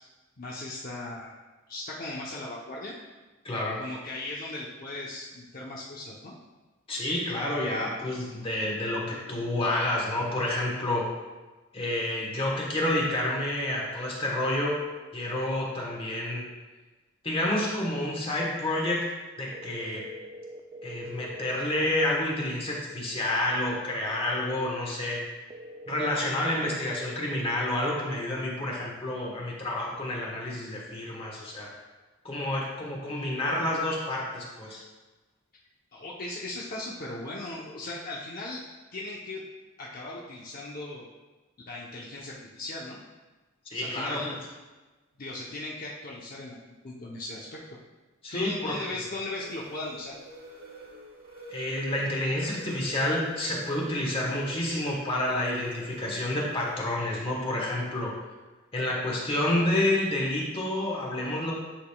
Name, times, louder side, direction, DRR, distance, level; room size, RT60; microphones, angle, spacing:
voice 1, 0.4-1.3 1.7-3.0 3.8-6.3 35.9-38.6 38.9-39.4 39.8-41.1 41.7-43.0 43.7-44.4 45.2-47.6 48.3-50.2, left 2 dB, 45° left, -4 dB, 0.8 m, -37 dB
voice 2, 3.4-3.8 6.9-11.1 11.7-14.9 15.1-16.4 17.2-19.1 19.4-20.1 20.8-25.2 25.9-31.7 32.2-34.8 43.7-44.4 48.2-48.8 51.5-58.1 58.7-61.5, left 1 dB, 30° left, -3 dB, 1.2 m, -29 dB
sound 1, 19.5-21.5 25.5-27.5, equal, 25° right, 0.3 m, -43 dB
sound 2, 49.3-56.8, right 2 dB, 50° right, 1.4 m, -46 dB
10.5 x 5.0 x 2.3 m, 1.2 s
head